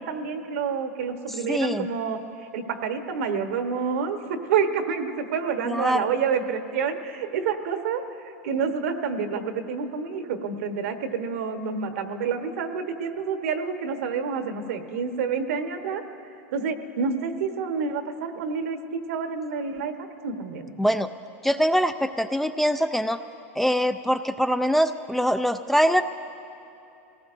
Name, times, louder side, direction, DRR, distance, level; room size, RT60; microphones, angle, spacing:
voice 1, 0.0-2.2 2.5-4.2 4.5-8.0 8.4-16.0 16.5-18.8 19.1-20.8, right 6 dB, 80° right, 6 dB, 1.2 m, -28 dB
voice 2, 1.5-1.9 5.7-6.1 20.8-21.1 21.4-23.2 23.6-26.0, equal, 5° left, 10 dB, 0.3 m, -23 dB
26.5 x 18.5 x 2.6 m, 2.7 s
supercardioid pair, 130°, 7 cm